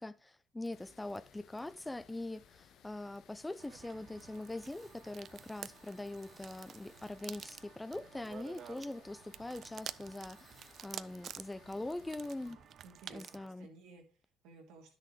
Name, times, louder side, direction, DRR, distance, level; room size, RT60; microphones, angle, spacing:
voice 1, 0.0-12.6 13.1-13.7, left 2 dB, 15° left, 0.5 m, -43 dB
sound 1, 0.7-12.5, left 8 dB, 70° left, 0.9 m, -63 dB
sound 2, 3.6-13.5, right 9 dB, 55° right, 0.4 m, -50 dB
sound 3, 4.6-11.1, right 4 dB, 35° right, 1.2 m, -68 dB
voice 2, 12.4-15.0, right 4 dB, 80° right, 2.3 m, -57 dB
10.5 x 6.5 x 3.3 m
supercardioid pair, 65°, 0 cm